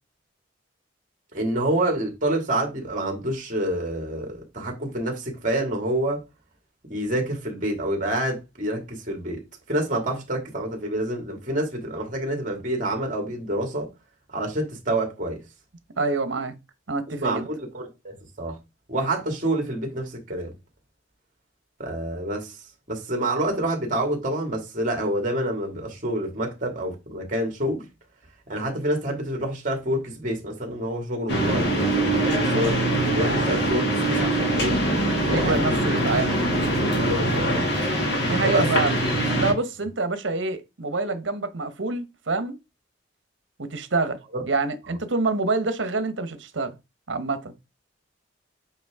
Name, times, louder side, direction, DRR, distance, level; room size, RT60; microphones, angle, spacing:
voice 1, 1.3-6.2 6.9-9.4 9.7-13.9 14.3-15.4 17.1-18.6 18.9-20.5 21.8-22.5 22.9-27.8 28.5-32.8 33.1-34.8 35.3-35.6 37.0-37.7 38.4-38.7 44.3-44.4, right 1 dB, 40° right, 2.2 m, -27 dB
voice 2, 16.0-16.5 16.9-17.5 35.3-36.4 38.3-39.0 39.4-42.6 43.6-44.2 44.5-46.8 47.1-47.5, right 3 dB, 75° right, 1.1 m, -26 dB
sound 1, 31.3-39.5, right 1 dB, 60° left, 2.2 m, -23 dB
8.2 x 3.7 x 3.6 m
head